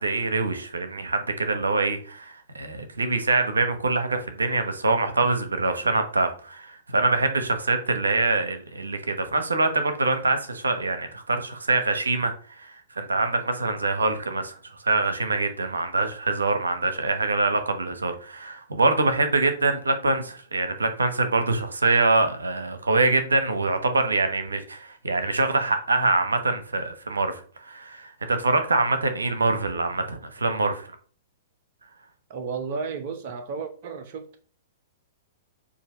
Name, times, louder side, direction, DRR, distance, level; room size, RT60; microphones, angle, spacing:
voice 1, 0.0-14.6 14.8-30.9, right 3 dB, 85° right, 0.9 m, -24 dB
voice 2, 32.3-34.5, right 5 dB, 50° right, 0.7 m, -33 dB
7.0 x 2.7 x 5.2 m
hypercardioid pair, 110°, 0 cm